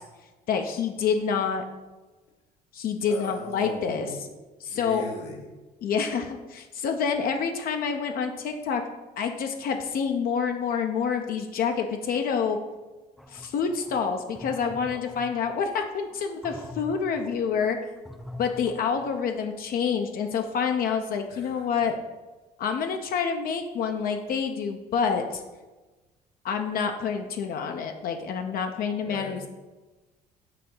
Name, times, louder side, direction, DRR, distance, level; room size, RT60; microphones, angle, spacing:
voice 1, 0.5-1.6 2.7-4.1 4.6-5.0 5.8-8.8 9.2-12.6 13.3-17.8 18.4-21.9 22.6-25.4 26.4-29.5, left 6 dB, 60° left, 5 dB, 0.6 m, -27 dB
voice 2, 3.1-4.3 4.7-5.5 21.3-21.9 29.0-29.5, left 2 dB, 90° left, -1 dB, 1.5 m, -39 dB
sound 1, 13.2-19.2, left 1 dB, ahead, 0.4 m, -44 dB
6.5 x 2.7 x 5.5 m, 1.2 s
cardioid pair, 110°, 17 cm